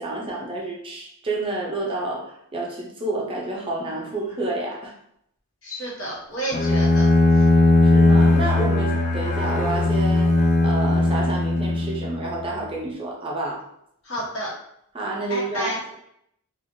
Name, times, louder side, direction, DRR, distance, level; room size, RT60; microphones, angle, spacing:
voice 1, 0.0-4.9 7.8-13.7 14.9-15.9, right 2 dB, 25° right, -3 dB, 0.5 m, -29 dB
voice 2, 5.6-7.1 14.1-14.5 15.3-15.8, right 1 dB, 60° left, -5 dB, 1.1 m, -30 dB
Bowed string instrument, 6.5-12.3, left 2 dB, 35° left, 0.3 m, -18 dB
3.0 x 2.4 x 2.6 m, 0.74 s
head